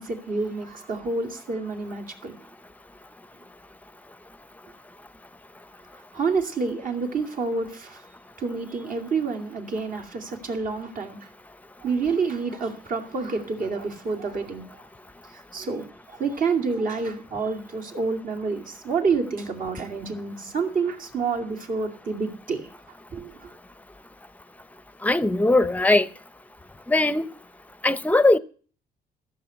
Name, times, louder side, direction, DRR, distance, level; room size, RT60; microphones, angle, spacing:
voice 1, 0.0-2.4 6.1-8.0 8.4-11.2 11.8-14.6 15.3-22.7 23.1-23.3, right 4 dB, 50° right, 2.5 m, -28 dB
voice 2, 25.0-26.1 26.9-27.3 27.8-28.4, left 2 dB, 10° left, 0.6 m, -19 dB
14.0 x 7.1 x 7.9 m
cardioid pair, 120°, 17 cm